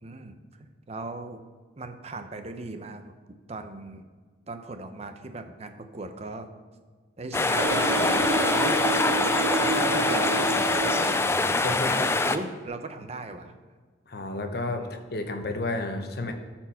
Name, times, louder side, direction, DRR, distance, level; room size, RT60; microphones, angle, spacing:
voice 1, 0.0-1.4 1.8-3.1 3.5-4.0 4.5-6.5 7.2-8.8 9.5-10.8 11.7-13.6 14.8-14.9, right 2 dB, 35° right, 7 dB, 0.7 m, -38 dB
sound 1, 7.3-12.4, left 3 dB, 15° left, 0.3 m, -24 dB
sound 2, 7.6-11.3, right 2 dB, 85° right, 0.9 m, -28 dB
voice 2, 11.1-12.1 14.1-16.3, left 2 dB, 60° left, 5 dB, 1.0 m, -32 dB
13.5 x 4.5 x 5.7 m, 1.4 s
head